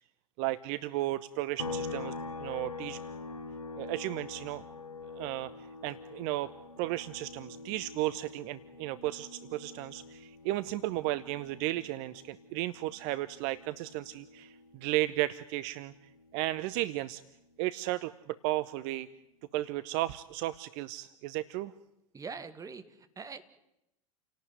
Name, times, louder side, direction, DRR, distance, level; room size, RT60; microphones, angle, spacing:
voice 1, 0.4-2.1 2.4-3.0 3.8-4.6 5.2-5.5 5.8-6.5 6.8-15.9 16.3-17.2 17.6-19.1 19.5-21.7, right 16 dB, 50° right, 14 dB, 0.9 m, -34 dB
sound 1, 1.6-15.1 15.5-17.7, left 3 dB, 80° left, 1.3 m, -45 dB
voice 2, 22.1-23.4, right 5 dB, 20° right, 8 dB, 2.3 m, -43 dB
29.5 x 18.0 x 9.5 m, 0.88 s
figure-of-eight pair, 80°, 18 cm